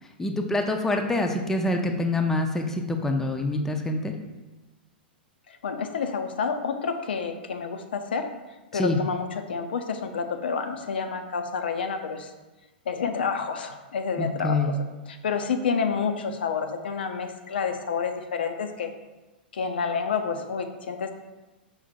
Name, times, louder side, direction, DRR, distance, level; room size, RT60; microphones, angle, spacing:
voice 1, 0.2-4.1 8.7-9.0 14.2-14.8, left 2 dB, 5° left, 4 dB, 0.4 m, -26 dB
voice 2, 5.6-8.3 8.7-12.3 12.9-14.7 15.1-18.9 19.5-21.1, left 5 dB, 75° left, 6 dB, 0.4 m, -29 dB
5.3 x 2.2 x 4.0 m, 1.1 s
hypercardioid pair, 105°, 5 cm